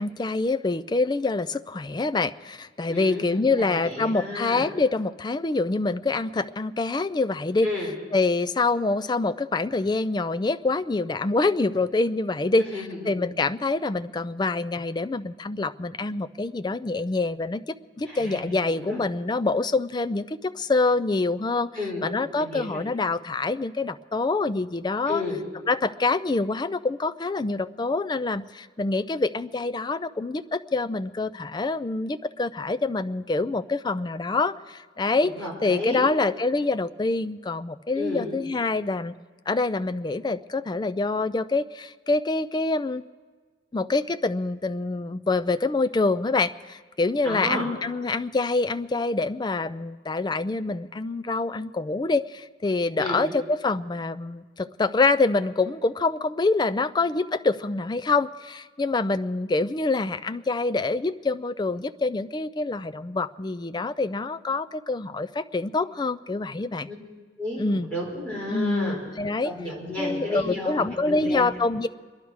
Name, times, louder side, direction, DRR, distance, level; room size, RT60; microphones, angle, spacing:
voice 1, 0.0-7.7 8.1-21.7 22.0-25.2 25.7-35.3 35.6-39.1 39.5-43.0 43.7-66.9 67.6-67.9 68.5-69.5 70.0-71.9, left 3 dB, 25° left, 12 dB, 0.4 m, -26 dB
voice 2, 2.9-4.7 7.6-7.9 12.6-13.0 18.0-19.0 21.7-22.1 22.4-22.8 25.1-25.4 35.3-36.1 37.9-38.3 47.2-47.7 53.0-53.3 66.9-67.0 67.4-69.0 69.4-71.5, left 2 dB, 5° left, -6 dB, 5.7 m, -32 dB
27.0 x 11.0 x 4.7 m, 1.5 s
head